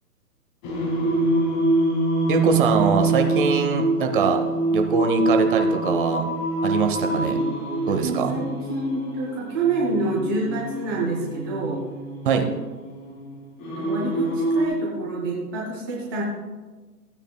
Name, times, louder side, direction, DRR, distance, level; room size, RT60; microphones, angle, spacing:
Singing, 0.6-14.7, right 1 dB, 25° left, 2.2 m, -25 dB
voice 1, 2.3-4.4 4.7-6.2 6.6-7.4 7.9-8.3 12.2-12.5, right 6 dB, 30° right, 5 dB, 0.9 m, -22 dB
voice 2, 8.0-11.8 13.8-16.2, right 3 dB, 15° right, -4 dB, 0.6 m, -27 dB
15.5 x 8.9 x 2.2 m, 1.3 s
hypercardioid pair, 145°, 48 cm